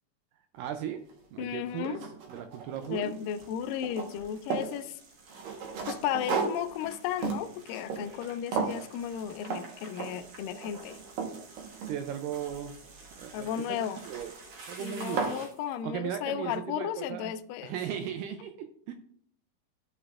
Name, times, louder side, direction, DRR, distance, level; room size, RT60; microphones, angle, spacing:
voice 1, 0.5-1.0 1.3-2.0 2.3-3.1 11.9-12.8 13.2-13.8 14.0-14.3 14.7-15.3 15.8-17.3 17.6-18.9, right 9 dB, 90° right, 1.9 m, -37 dB
sound 1, 1.1-1.2 1.7-3.1 3.4-4.8 5.3-8.3 8.5-8.9 9.4-9.7 10.0-10.3 10.8-12.3 13.8-14.2 14.7-14.8 15.0-15.4, right 5 dB, 70° right, 2.7 m, -34 dB
voice 2, 1.4-2.0 2.8-5.0 5.9-11.0 13.3-14.0 14.8-17.8, left 9 dB, 85° left, 1.9 m, -34 dB
sound 2, 2.7-15.7, right 3 dB, 50° right, 2.3 m, -51 dB
13.5 x 5.2 x 2.4 m
omnidirectional pair, 4.4 m